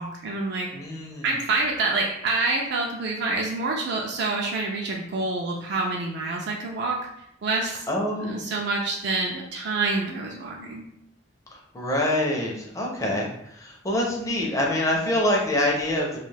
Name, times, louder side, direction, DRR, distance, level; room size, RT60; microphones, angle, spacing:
voice 1, 0.0-0.7 1.2-7.0 7.4-7.9 8.2-10.8, right 3 dB, 60° right, -1 dB, 0.4 m, -27 dB
voice 2, 0.7-1.4 7.9-8.5 11.5-16.2, left 1 dB, 15° left, -2 dB, 0.5 m, -26 dB
2.3 x 2.3 x 3.2 m, 0.77 s
head